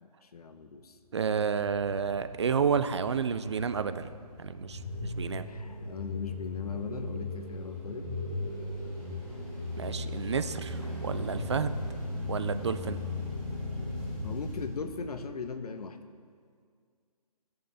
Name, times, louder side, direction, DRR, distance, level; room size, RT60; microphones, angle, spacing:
voice 1, 0.0-1.0 5.4-8.1 14.2-16.0, left 5 dB, 65° left, 9 dB, 0.9 m, -39 dB
voice 2, 1.1-4.1 4.4-5.5 9.8-11.7 12.3-13.0, right 6 dB, 45° right, 12 dB, 0.4 m, -30 dB
sound 1, 1.4-15.5, left 2 dB, 5° left, 2.5 m, -37 dB
17.5 x 6.9 x 3.3 m, 2.1 s
hypercardioid pair, 155°, 21 cm